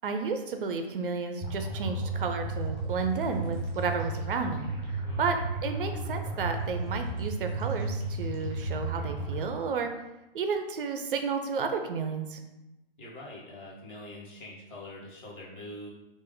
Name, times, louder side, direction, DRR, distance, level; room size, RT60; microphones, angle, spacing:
voice 1, 0.0-4.7 5.2-5.4 5.6-9.9 10.3-12.4, right 5 dB, 60° right, 6 dB, 0.5 m, -32 dB
sound 1, 1.4-9.4, right 2 dB, 20° right, 1.0 m, -33 dB
voice 2, 5.0-5.4 13.0-15.9, left 1 dB, 55° left, -5 dB, 1.5 m, -44 dB
3.2 x 2.5 x 3.7 m, 0.97 s
hypercardioid pair, 145°, 31 cm